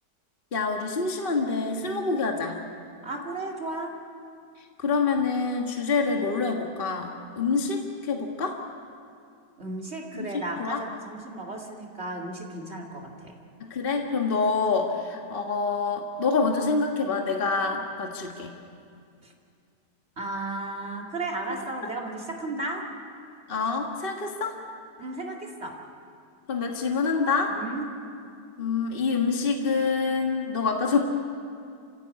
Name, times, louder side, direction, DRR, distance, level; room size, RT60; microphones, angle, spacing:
voice 1, 0.5-2.6 4.8-8.6 10.6-10.8 13.6-18.6 23.5-24.6 26.5-27.6 28.6-31.0, left 4 dB, 35° left, 2 dB, 1.6 m, -26 dB
voice 2, 3.0-3.9 9.6-13.3 19.2-19.3 20.2-22.9 25.0-25.7 27.5-27.8, right 2 dB, 40° right, 0 dB, 2.7 m, -34 dB
28.5 x 16.0 x 8.6 m, 2.4 s
omnidirectional pair, 1.7 m